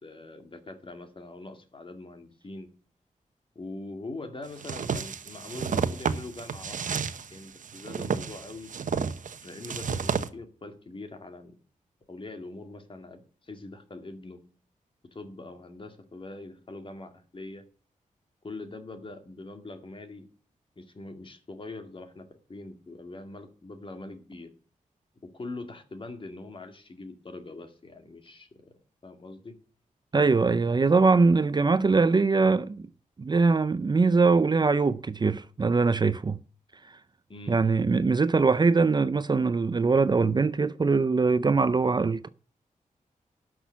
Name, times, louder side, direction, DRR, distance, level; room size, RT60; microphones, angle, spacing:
voice 1, 0.0-2.7 3.6-8.7 9.4-11.5 12.1-14.4 15.1-17.6 18.4-20.2 20.8-24.5 25.3-28.7 29.0-29.6 37.3-37.6, left 2 dB, 40° left, 2.1 m, -43 dB
sound 1, 4.6-10.3, right 6 dB, 70° right, 0.9 m, -31 dB
voice 2, 30.1-32.8 33.2-36.4 37.5-42.3, right 4 dB, 30° right, 0.5 m, -22 dB
12.0 x 6.3 x 8.2 m
wide cardioid pair, 115°, 14 cm